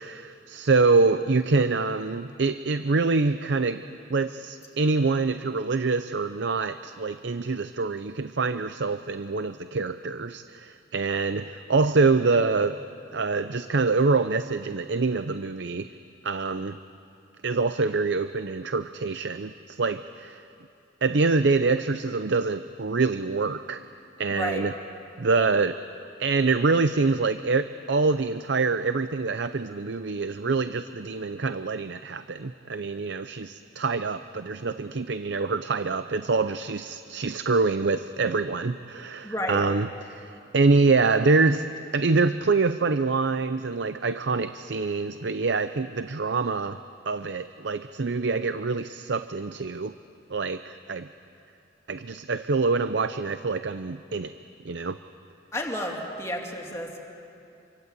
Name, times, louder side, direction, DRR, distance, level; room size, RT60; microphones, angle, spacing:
voice 1, 0.0-3.8 4.1-12.8 13.1-15.9 16.2-16.8 17.4-20.4 21.0-23.8 24.2-24.7 25.2-25.7 26.2-41.7 41.9-46.8 47.1-50.0 50.3-51.1 51.9-54.3 54.6-55.0, right 3 dB, 65° right, 11 dB, 0.6 m, -25 dB
voice 2, 24.3-24.6 39.2-39.7 55.5-57.0, left 1 dB, 15° left, 0 dB, 3.1 m, -31 dB
27.0 x 24.5 x 8.2 m, 2.7 s
head